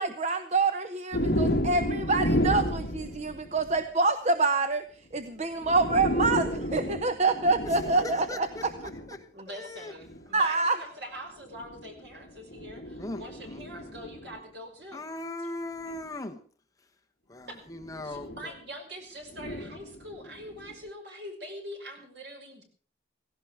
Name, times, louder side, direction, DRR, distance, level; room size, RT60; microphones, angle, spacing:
voice 1, 0.0-4.8 5.1-8.5 10.3-10.8, right 3 dB, 40° right, 10 dB, 0.9 m, -26 dB
sound 1, 1.1-3.8 5.1-5.2 5.5-9.1 10.0-10.3 11.4-14.4 15.9-16.0 17.7-18.5 19.3-20.7, equal, 55° left, 1.7 m, -32 dB
voice 2, 7.6-9.9 12.9-13.9 14.9-16.4 17.3-18.5, left 2 dB, 20° left, 5 dB, 1.2 m, -40 dB
voice 3, 9.3-15.0 17.5-17.6 18.0-22.6, equal, 70° right, 2 dB, 5.8 m, -43 dB
17.0 x 16.5 x 4.9 m, 0.43 s
head